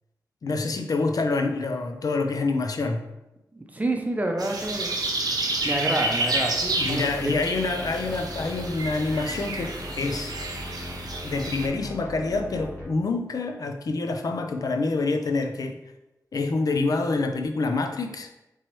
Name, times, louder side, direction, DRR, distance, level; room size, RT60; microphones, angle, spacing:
voice 1, 0.4-3.1 6.8-10.4 11.2-15.7 16.3-18.3, left 3 dB, 65° left, 6 dB, 0.4 m, -27 dB
voice 2, 3.5-4.9 5.6-7.3, right 2 dB, 20° right, 2 dB, 0.6 m, -28 dB
sound 1, 4.4-11.7, right 2 dB, 70° right, 0.7 m, -30 dB
sound 2, 6.5-12.9, left 1 dB, 35° left, 1.3 m, -39 dB
4.4 x 3.0 x 3.1 m, 0.93 s
wide cardioid pair, 95°, 7 cm